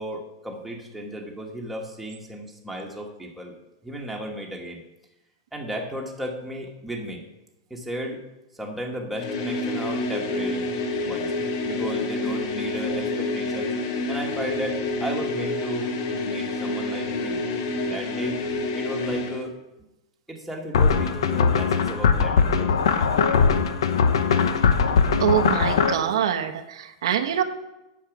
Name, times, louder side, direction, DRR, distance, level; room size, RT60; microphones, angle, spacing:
voice 1, 0.0-3.5 3.8-4.8 5.5-7.2 7.7-8.2 8.5-10.6 11.0-11.3 11.6-13.7 14.1-16.0 16.2-17.4 17.9-18.4 18.7-19.6 20.3-22.7, equal, ahead, -1 dB, 1.4 m, -34 dB
sound 1, 9.1-19.5, left 2 dB, 55° left, 1.2 m, -28 dB
sound 2, 20.7-25.9, left 5 dB, 90° left, 0.8 m, -20 dB
voice 2, 25.2-27.4, right 9 dB, 85° right, 7 dB, 0.8 m, -24 dB
8.6 x 6.7 x 6.0 m, 0.97 s
supercardioid pair, 150°, 3 cm